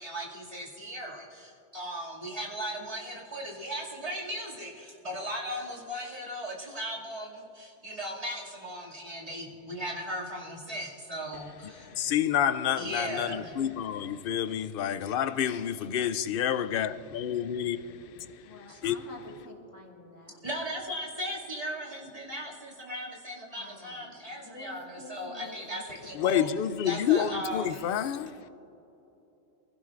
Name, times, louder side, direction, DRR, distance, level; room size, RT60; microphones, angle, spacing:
voice 1, 0.0-11.9 12.8-13.6 14.5-14.6 18.7-18.8 20.4-26.5 26.8-28.0, equal, 30° right, 2.5 m, -37 dB
voice 2, 12.0-17.8 18.8-19.0 26.2-28.3, left 9 dB, 60° left, 0.6 m, -28 dB
voice 3, 18.4-20.4 23.6-26.2, left 2 dB, 90° left, 2.4 m, -48 dB
23.5 x 16.5 x 2.5 m
omnidirectional pair, 1.3 m